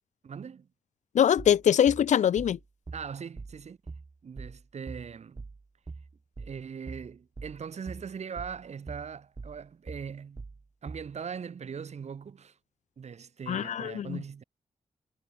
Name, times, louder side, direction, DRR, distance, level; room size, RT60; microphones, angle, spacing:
voice 1, 0.2-0.7 2.9-3.8 4.2-5.5 6.4-10.5 10.8-12.6 13.0-14.4, right 6 dB, 65° right, 3.3 m, -40 dB
voice 2, 1.1-2.6 13.5-14.2, left 9 dB, 80° left, 0.7 m, -23 dB
sound 1, 1.4-11.2, right 4 dB, 35° right, 1.4 m, -43 dB
cardioid pair, 80°, 12 cm